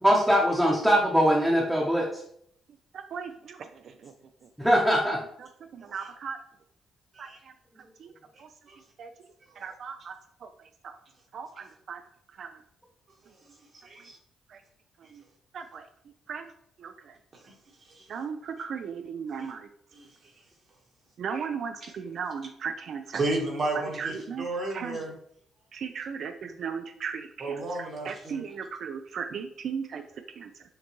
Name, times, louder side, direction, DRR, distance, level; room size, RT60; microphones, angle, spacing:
voice 1, 0.0-2.1 4.6-5.2, equal, 5° right, -4 dB, 0.8 m, -22 dB
voice 2, 3.1-3.6 4.0-4.1 5.4-5.5 5.7-6.4 7.2-7.3 8.0-8.1 8.4-8.5 9.0-9.1 9.6-10.1 10.4-10.5 10.8-10.9 11.3-12.0 12.4-12.5 15.5-15.8 16.3-16.4 16.8-16.9 18.1-19.7 21.2-23.2 24.0-25.0 25.7-30.0 30.4-30.5, right 6 dB, 60° right, 7 dB, 0.3 m, -36 dB
voice 3, 13.8-14.2 17.9-18.2 19.3-19.5 19.9-20.1 21.8-21.9 23.1-25.1 27.4-28.5, right 2 dB, 45° right, 0 dB, 1.3 m, -33 dB
6.3 x 2.2 x 3.0 m, 0.68 s
cardioid pair, 90°, 0 cm